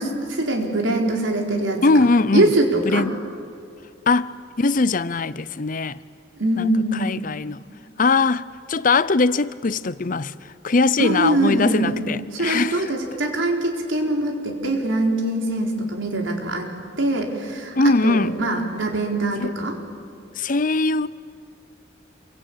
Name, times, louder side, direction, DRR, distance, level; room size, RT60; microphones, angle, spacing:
voice 1, 0.0-2.0 2.3-3.1 6.4-7.1 11.0-12.0 12.3-16.7 17.0-17.8 18.0-19.8, right 1 dB, 85° right, 4.3 m, -23 dB
voice 2, 1.8-2.5 2.9-3.1 4.1-6.0 6.6-6.7 7.0-7.6 8.0-10.3 10.6-12.8 17.7-18.3 19.4-19.5 20.4-21.1, left 3 dB, 45° left, 0.6 m, -21 dB
28.0 x 24.0 x 8.7 m
head